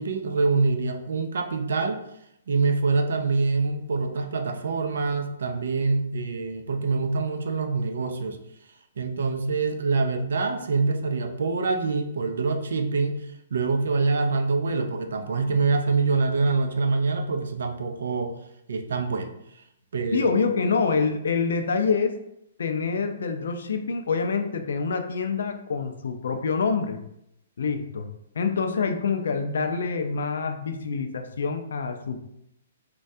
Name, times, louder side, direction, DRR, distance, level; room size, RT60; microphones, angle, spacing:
voice 1, 0.0-2.0 2.5-8.4 9.0-13.2 13.5-18.3 18.7-19.3 19.9-20.4, right 4 dB, 70° right, 6 dB, 0.4 m, -25 dB
voice 2, 20.1-22.2 22.6-27.0 27.6-28.1 28.4-32.2, left 5 dB, 70° left, 6 dB, 0.4 m, -26 dB
3.2 x 2.2 x 2.6 m, 0.79 s
hypercardioid pair, 180°, 0 cm